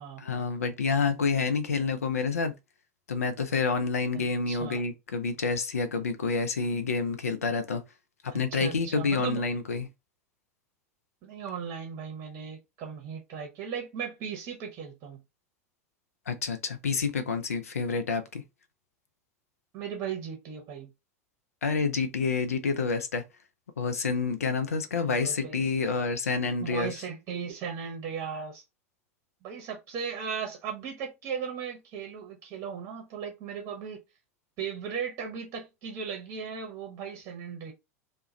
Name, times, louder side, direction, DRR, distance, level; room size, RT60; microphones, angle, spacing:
voice 1, 0.2-2.5 3.1-7.8 8.2-9.9 16.3-18.4 21.6-23.2 23.8-27.0, left 4 dB, 75° left, 0.5 m, -28 dB
voice 2, 4.1-4.8 8.3-9.4 11.2-15.2 19.7-20.9 25.1-25.7 26.6-28.6 29.4-34.0 34.6-37.7, right 7 dB, 40° right, 0.8 m, -37 dB
2.3 x 2.2 x 2.9 m
figure-of-eight pair, 85°, 8 cm